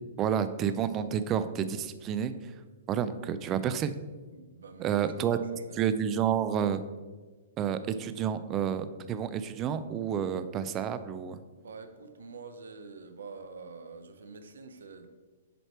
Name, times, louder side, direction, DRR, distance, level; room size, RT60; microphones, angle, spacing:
voice 1, 0.2-2.3 2.9-3.9 4.8-5.4 5.8-6.9 7.6-11.4, right 8 dB, 25° right, 12 dB, 0.4 m, -30 dB
voice 2, 4.3-5.9 11.6-15.1, right 4 dB, 85° right, 8 dB, 0.7 m, -46 dB
7.8 x 3.2 x 4.4 m, 1.3 s
hypercardioid pair, 145°, 0 cm